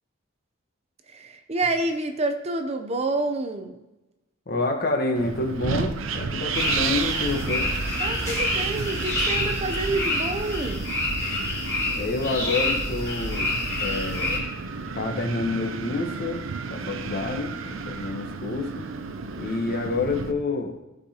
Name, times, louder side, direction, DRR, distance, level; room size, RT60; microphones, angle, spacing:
voice 1, 1.1-3.8 8.0-10.8, right 2 dB, 30° right, 7 dB, 0.6 m, -28 dB
voice 2, 4.5-7.7 11.9-14.4 14.9-16.4 16.7-18.9 19.4-20.7, left 3 dB, 50° left, 3 dB, 1.1 m, -28 dB
Wind, 5.2-20.3, right 5 dB, 90° right, 0.6 m, -32 dB
sound 1, 6.5-14.4, left 1 dB, 15° left, 2.3 m, -28 dB
15.0 x 5.0 x 2.9 m, 1.0 s
head